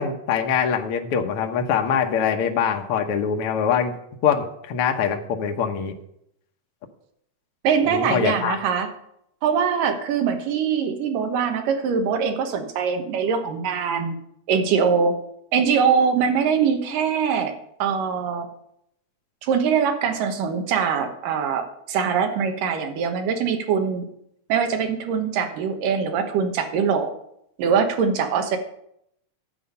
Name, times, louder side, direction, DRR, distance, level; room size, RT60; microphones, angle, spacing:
voice 1, 0.0-3.9 4.2-5.9 7.9-8.6, left 7 dB, 70° left, 4 dB, 1.4 m, -23 dB
voice 2, 7.6-8.9 9.4-14.2 14.5-15.1 15.5-17.5 17.8-18.5 19.4-24.1 24.5-27.1 27.6-28.6, right 6 dB, 85° right, 6 dB, 2.9 m, -22 dB
11.0 x 8.2 x 5.5 m, 0.75 s
omnidirectional pair, 3.7 m